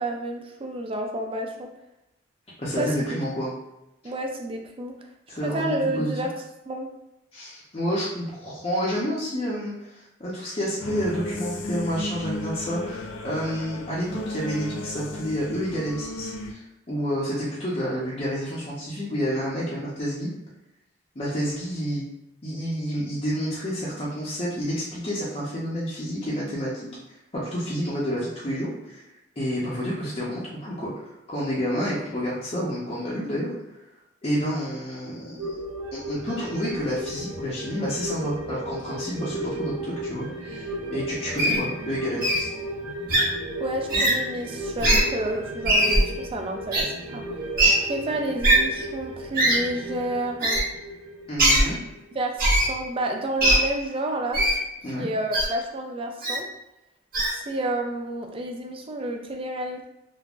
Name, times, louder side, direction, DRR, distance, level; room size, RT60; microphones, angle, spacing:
voice 1, 0.0-1.7 2.8-3.0 4.0-5.0 5.4-6.3 6.7-6.9 43.6-47.2 47.8-50.6 52.1-54.4 55.0-56.5 57.3-59.8, right 1 dB, 30° right, 3 dB, 0.4 m, -30 dB
voice 2, 2.6-3.5 5.3-6.1 7.3-20.3 21.2-22.0 22.4-26.9 27.3-29.0 29.4-33.5 34.2-35.5 35.9-39.7 40.0-42.5 51.3-51.8 54.8-55.1, equal, 30° left, -8 dB, 0.6 m, -29 dB
sound 1, 10.8-16.5, left 1 dB, 85° left, 0.4 m, -34 dB
sound 2, 35.4-52.2 52.5-52.6, right 1 dB, 85° right, 0.6 m, -35 dB
Wild animals, 41.4-41.6 42.2-42.4 43.1-43.2 43.9-44.1 44.8-45.0 45.6-46.0 46.7-46.8 47.6-47.7 48.4-48.6 49.4-49.6 50.4-50.6 51.4-51.6 52.4-52.7 53.4-53.6 54.3-54.6 55.3-55.5 56.2-56.4 57.1-57.3, right 1 dB, 50° right, 1.0 m, -19 dB
3.4 x 2.1 x 2.4 m, 0.91 s
head